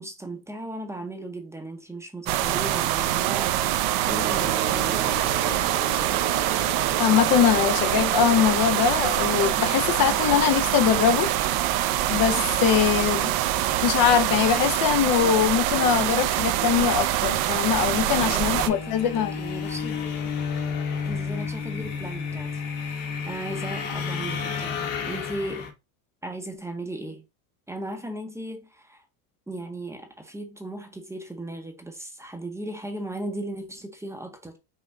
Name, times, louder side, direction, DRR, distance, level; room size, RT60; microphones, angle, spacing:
voice 1, 0.0-3.6 4.0-5.1 18.3-20.3 21.0-23.0 23.3-25.7 26.2-27.2 27.7-29.0 29.5-34.6, right 1 dB, 5° right, 0.7 m, -36 dB
sound 1, 2.3-18.7, right 13 dB, 60° right, 0.6 m, -24 dB
sound 2, 4.0-11.5, right 6 dB, 35° right, 1.0 m, -33 dB
voice 2, 7.0-11.3 12.1-13.3 13.8-19.3, left 9 dB, 50° left, 0.6 m, -22 dB
sound 3, 17.7-25.7, left 6 dB, 80° left, 1.3 m, -31 dB
5.6 x 2.2 x 3.7 m
cardioid pair, 135°, 45 cm